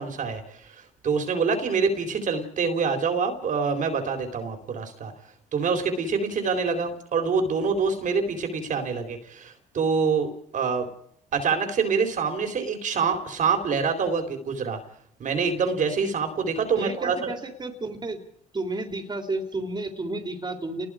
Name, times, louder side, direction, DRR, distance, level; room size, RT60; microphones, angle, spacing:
voice 1, 0.0-5.1 5.5-10.9 11.3-14.8 15.2-17.3, right 5 dB, 55° right, 6 dB, 4.0 m, -26 dB
voice 2, 16.8-18.2 18.5-20.9, right 2 dB, 30° right, 4 dB, 3.7 m, -32 dB
29.5 x 20.5 x 5.0 m, 0.67 s
supercardioid pair, 75°, 15 cm